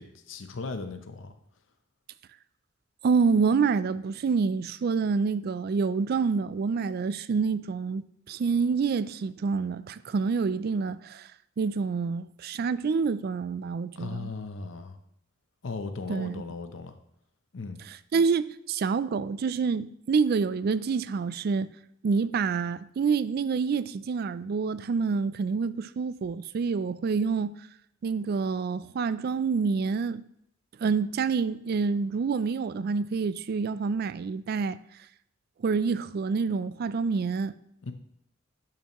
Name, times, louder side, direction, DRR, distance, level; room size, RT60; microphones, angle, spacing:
voice 1, 0.0-1.4 14.0-15.0 15.6-17.0 17.5-17.8 37.8-37.9, left 3 dB, 70° left, 0.7 m, -37 dB
voice 2, 3.0-11.3 11.6-14.3 16.1-16.4 17.9-21.7 22.0-27.5 28.0-30.2 30.8-34.8 35.6-37.6, right 5 dB, 50° right, 0.3 m, -27 dB
11.0 x 5.7 x 3.0 m
head